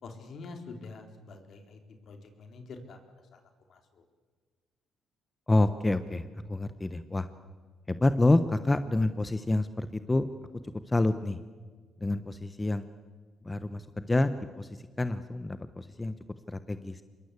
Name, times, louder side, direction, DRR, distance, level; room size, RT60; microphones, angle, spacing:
voice 1, 0.0-3.4 3.7-4.0, left 3 dB, 60° left, 5 dB, 3.8 m, -46 dB
voice 2, 5.5-7.3 7.9-10.3 10.9-11.4 12.0-12.9 13.4-14.3 14.6-16.1 16.5-17.0, left 2 dB, 15° left, 11 dB, 1.1 m, -28 dB
26.5 x 22.0 x 8.3 m, 1.5 s
cardioid pair, 90°, 0 cm